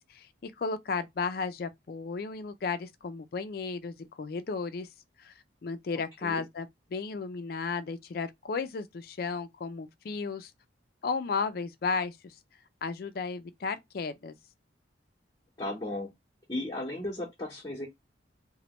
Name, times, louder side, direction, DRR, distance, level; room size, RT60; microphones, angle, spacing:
voice 1, 0.0-4.9 5.2-5.3 5.6-10.5 11.0-12.3 12.8-14.3, left 4 dB, 50° left, 0.4 m, -34 dB
voice 2, 15.6-16.1 16.5-17.9, left 1 dB, 20° left, 0.8 m, -35 dB
3.0 x 2.1 x 2.9 m
head